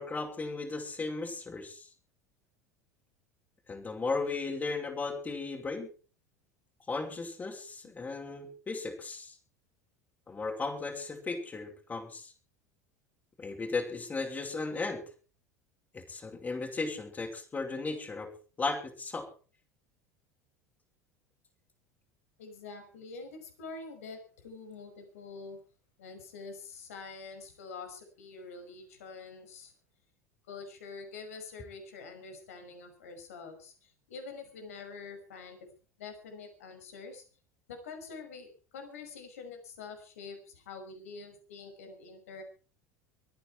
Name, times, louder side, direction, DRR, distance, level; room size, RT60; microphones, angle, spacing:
voice 1, 0.0-1.9 3.7-5.9 6.9-9.4 10.3-12.3 13.4-15.0 15.9-18.3 18.6-19.3, left 3 dB, 20° left, 0 dB, 5.3 m, -36 dB
voice 2, 22.4-25.6 26.0-29.7 30.5-35.7 36.0-37.2 37.7-42.4, left 4 dB, 65° left, 6 dB, 5.7 m, -46 dB
24.0 x 9.3 x 4.6 m, 0.38 s
figure-of-eight pair, 75°, 8 cm